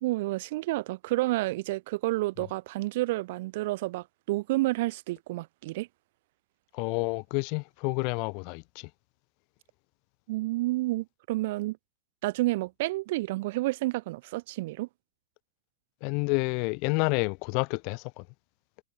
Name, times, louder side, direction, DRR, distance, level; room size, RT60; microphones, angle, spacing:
voice 1, 0.0-5.9 10.3-11.8 12.2-14.9, right 19 dB, 50° right, 1.1 m, -30 dB
voice 2, 6.7-8.9 16.0-18.3, left 37 dB, 45° left, 0.5 m, -29 dB
figure-of-eight pair, 90°, 0 cm